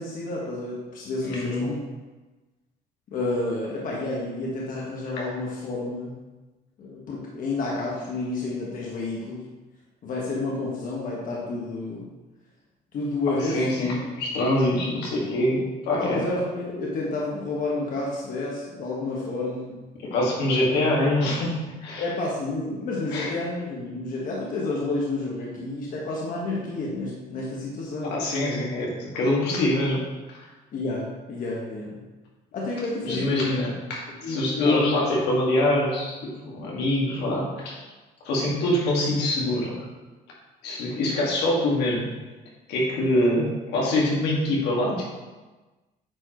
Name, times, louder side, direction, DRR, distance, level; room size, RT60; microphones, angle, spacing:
voice 1, 0.0-1.8 3.1-6.1 6.8-9.4 10.0-12.1 12.9-14.0 16.0-19.7 20.8-21.0 22.0-28.1 29.5-29.7 30.7-32.0 32.5-33.4 34.2-34.8, left 2 dB, 55° left, -4 dB, 1.5 m, -30 dB
voice 2, 1.2-1.6 13.3-16.2 20.1-21.6 21.8-22.0 23.1-23.3 28.0-30.0 33.0-37.8 38.2-39.9 40.6-42.1 42.7-45.1, left 1 dB, 85° left, -4 dB, 2.0 m, -24 dB
8.8 x 4.5 x 3.1 m, 1.2 s
cardioid pair, 110°, 17 cm